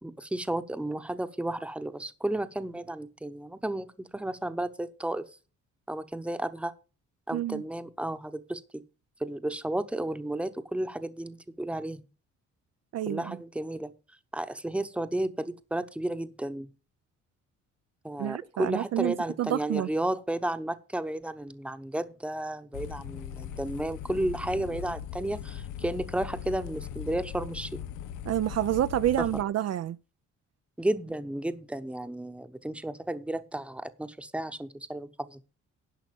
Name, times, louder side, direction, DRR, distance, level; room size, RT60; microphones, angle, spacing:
voice 1, 0.0-5.3 5.9-6.7 7.3-8.8 9.2-12.0 13.1-13.9 14.3-16.7 18.0-27.8 29.2-29.3 30.8-35.4, right 1 dB, 5° right, 0.9 m, -33 dB
voice 2, 7.3-7.6 12.9-13.4 18.2-19.9 28.3-30.0, right 12 dB, 55° right, 0.5 m, -28 dB
sound 1, 22.7-29.4, left 10 dB, 90° left, 0.8 m, -39 dB
11.0 x 5.8 x 7.0 m
cardioid pair, 90°, 30 cm